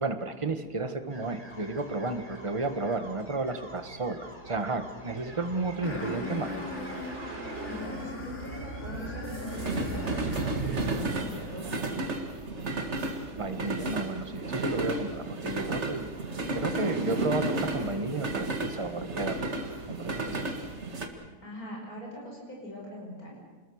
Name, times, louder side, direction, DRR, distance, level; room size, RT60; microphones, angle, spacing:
voice 1, 0.0-6.5 13.4-16.1 16.5-19.5 19.9-20.4, right 3 dB, 20° right, 8 dB, 1.4 m, -32 dB
sound 1, 1.1-10.1, equal, 5° left, 5.2 m, -49 dB
sound 2, 1.6-21.1, right 2 dB, 45° right, 2.2 m, -34 dB
sound 3, 5.8-10.7, left 2 dB, 45° left, 3.1 m, -40 dB
voice 2, 7.7-12.0 21.4-23.4, equal, 60° left, -2 dB, 5.8 m, -42 dB
28.0 x 20.5 x 6.5 m, 1.3 s
omnidirectional pair, 1.7 m